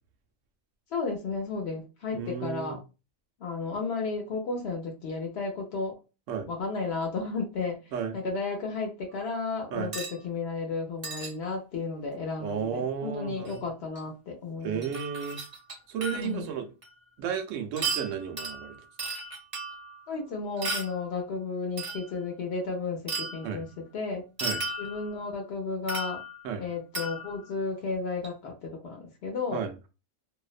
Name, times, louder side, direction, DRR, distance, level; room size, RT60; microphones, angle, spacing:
voice 1, 0.9-2.8 3.4-6.0 6.5-14.9 16.1-16.5 20.1-23.7 23.9-24.2 24.8-26.2 26.6-29.6, left 4 dB, 65° left, 1 dB, 0.7 m, -33 dB
voice 2, 2.1-2.8 6.3-6.5 7.9-8.2 9.7-9.9 12.4-13.6 14.6-15.4 15.9-16.7 17.2-18.8 23.4-23.6 24.4-24.6 26.4-26.6 29.5-29.9, right 7 dB, 70° right, 6 dB, 0.9 m, -33 dB
sound 1, 9.9-10.2 11.0-11.3 13.4-13.6 14.0-14.1 14.8-16.4 16.8-16.9 17.8-20.0 20.6-21.0 21.8-22.1 23.1-23.6 24.4-25.2 25.9-26.5 26.9-27.5 28.2-28.3, right 3 dB, 35° right, 0.6 m, -35 dB
2.6 x 2.0 x 2.4 m, 0.30 s
omnidirectional pair, 1.4 m